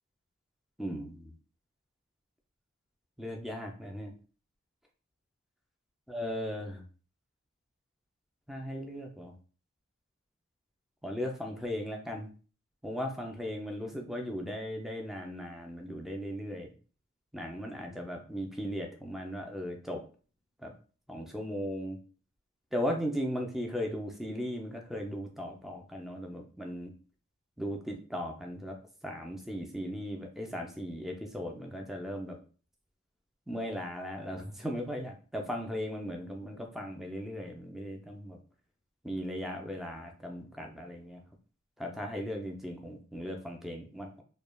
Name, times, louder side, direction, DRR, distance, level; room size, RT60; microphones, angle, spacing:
voice 1, 0.8-1.3 3.2-4.1 6.1-6.8 8.5-9.3 11.0-12.3 12.8-16.7 17.3-20.0 20.6-20.7 21.1-22.0 22.7-26.9 27.6-28.8 29.0-32.4 33.5-38.4 39.0-41.2 41.8-44.2, equal, ahead, 2 dB, 0.4 m, -37 dB
3.1 x 2.2 x 2.2 m, 0.39 s
head